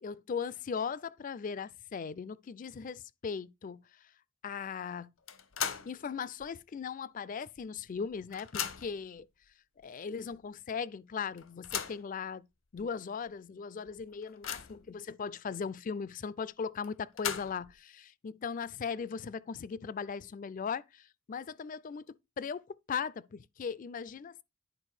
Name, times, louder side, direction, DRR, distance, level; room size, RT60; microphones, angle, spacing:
voice 1, 0.0-3.8 4.4-5.1 5.9-9.3 9.8-12.4 12.7-24.4, left 6 dB, 40° left, 0.3 m, -38 dB
sound 1, 5.3-6.0 6.4-6.5 7.6-7.7 8.0-9.1 9.8-9.9 10.3-10.4 11.4-12.1 12.8-12.9 13.3-13.4 13.9-14.9 16.8-17.8, left 8 dB, 80° left, 0.9 m, -38 dB
9.9 x 4.7 x 4.8 m
head